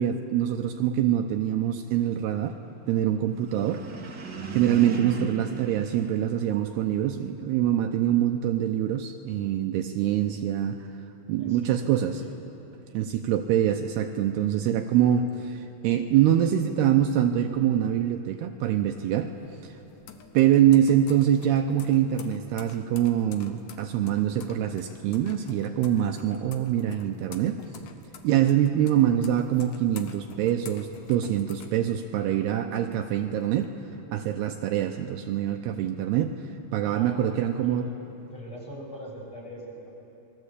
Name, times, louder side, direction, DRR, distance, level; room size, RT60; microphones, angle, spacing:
voice 1, 0.0-2.6 2.9-4.2 4.5-10.8 11.3-12.2 12.9-19.3 19.6-19.8 20.3-27.6 28.2-33.7 34.1-36.4 36.7-37.9, right 10 dB, 75° right, 5 dB, 2.7 m, -24 dB
sound 1, 3.3-6.9, right 5 dB, 55° right, 1.1 m, -37 dB
voice 2, 11.4-12.3 36.8-38.0 38.3-40.0, right 1 dB, 30° left, -1 dB, 7.1 m, -42 dB
sound 2, 18.6-32.4 32.8-33.7, left 7 dB, 65° left, 2.5 m, -48 dB
28.0 x 21.5 x 8.3 m, 3.0 s
omnidirectional pair, 5.1 m